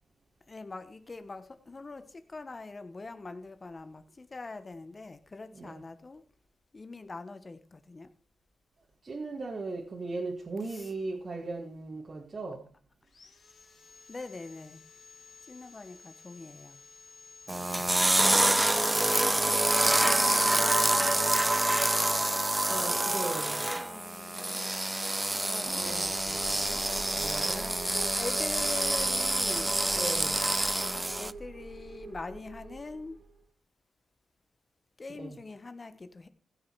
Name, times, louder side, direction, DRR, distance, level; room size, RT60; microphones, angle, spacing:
voice 1, 0.5-6.2 6.7-8.1 10.6-10.9 14.1-14.8 15.4-16.8 20.3-21.0 23.8-24.7 25.3-26.9 27.9-29.7 31.2-33.2 35.0-36.3, left 3 dB, 30° left, 1.2 m, -43 dB
voice 2, 5.5-5.8 9.0-12.7 19.8-20.9 22.7-23.9 24.4-24.5 25.6-26.1 27.1-27.8 29.9-30.5 35.1-35.4, right 3 dB, 40° right, 2.1 m, -39 dB
Sawing, 13.0-19.5, left 4 dB, 50° left, 1.8 m, -54 dB
sound 1, 17.5-31.3, right 1 dB, 15° right, 0.5 m, -27 dB
sound 2, 25.6-33.4, right 3 dB, 80° right, 1.8 m, -45 dB
16.0 x 6.7 x 4.7 m
cardioid pair, 80°, 0 cm